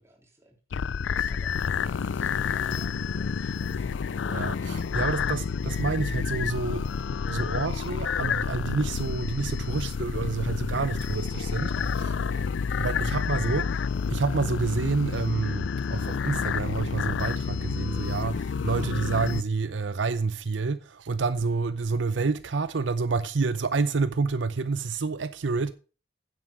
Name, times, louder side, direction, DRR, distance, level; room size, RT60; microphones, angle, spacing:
voice 1, 0.0-4.2, right 1 dB, 15° right, 3.1 m, -55 dB
sound 1, 0.7-19.4, left 6 dB, 75° left, 0.4 m, -29 dB
voice 2, 4.3-6.9 7.3-25.7, right 4 dB, 75° right, 0.6 m, -29 dB
9.7 x 8.0 x 5.1 m
head